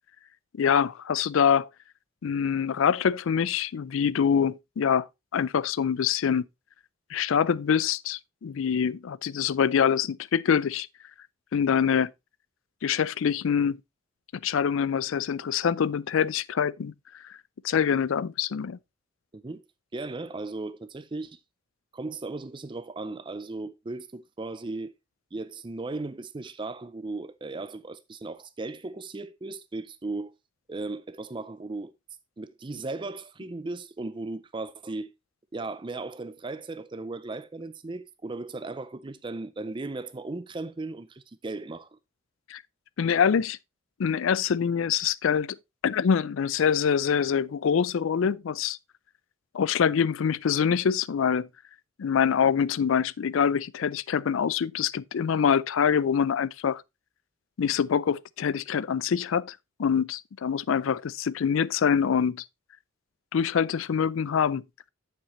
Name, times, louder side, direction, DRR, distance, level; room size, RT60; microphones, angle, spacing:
voice 1, 0.6-1.7 2.2-6.5 7.1-10.9 11.5-12.1 12.8-13.8 14.4-16.9 17.6-18.8 42.5-42.6 43.0-43.6 44.0-45.6 45.8-48.8 49.5-51.5 52.0-56.8 57.6-62.4 63.3-64.6, left 7 dB, 70° left, 0.4 m, -25 dB
voice 2, 19.9-21.4 21.9-24.9 25.3-30.3 30.7-31.9 32.4-35.1 35.5-42.0, right 3 dB, 25° right, 0.4 m, -36 dB
8.8 x 7.4 x 3.0 m
head